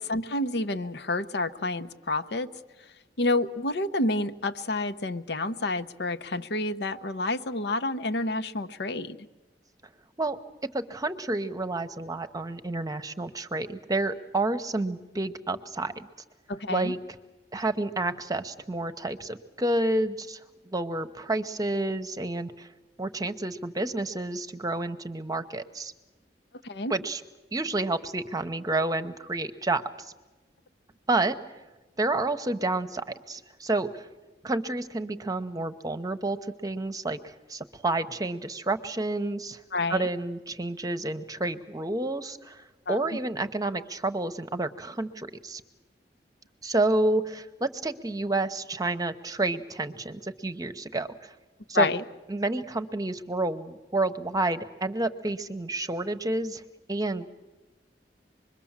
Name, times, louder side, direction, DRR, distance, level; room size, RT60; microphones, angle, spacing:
voice 1, 0.0-2.5 3.2-9.2 16.5-16.9 26.6-26.9 39.7-40.1 42.9-43.0 51.7-52.0, left 2 dB, 70° left, 10 dB, 0.9 m, -29 dB
voice 2, 10.7-16.1 16.7-17.0 17.5-20.4 20.7-22.7 23.0-25.9 26.9-27.2 27.5-29.8 31.1-31.3 32.0-34.0 34.4-36.4 36.6-39.6 39.9-45.6 46.6-51.1 51.7-51.9 52.3-56.6 56.9-57.3, right 2 dB, 20° right, 10 dB, 0.9 m, -29 dB
25.0 x 22.0 x 7.4 m, 1.1 s
head